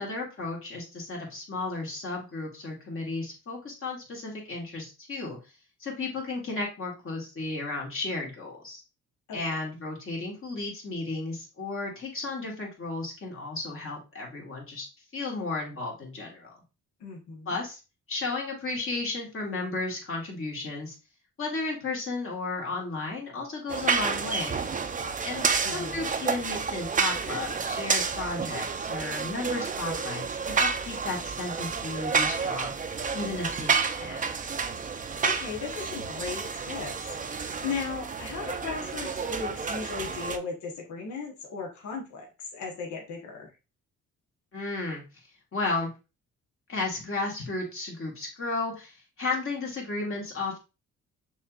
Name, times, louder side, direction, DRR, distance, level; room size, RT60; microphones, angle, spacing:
voice 1, 0.0-5.4 5.8-8.8 9.3-14.9 15.1-16.6 17.5-17.8 18.1-20.9 21.4-24.6 25.2-34.3 44.5-45.0 45.5-45.9 46.7-50.6, left 3 dB, 45° left, -2 dB, 2.1 m, -34 dB
voice 2, 17.0-17.6 25.6-26.1 35.2-36.9 37.2-43.5, left 5 dB, 70° left, 0 dB, 1.2 m, -37 dB
sound 1, 23.7-40.4, right 5 dB, 25° right, 0.5 m, -30 dB
6.3 x 3.1 x 2.4 m, 0.30 s
cardioid pair, 90°, 30 cm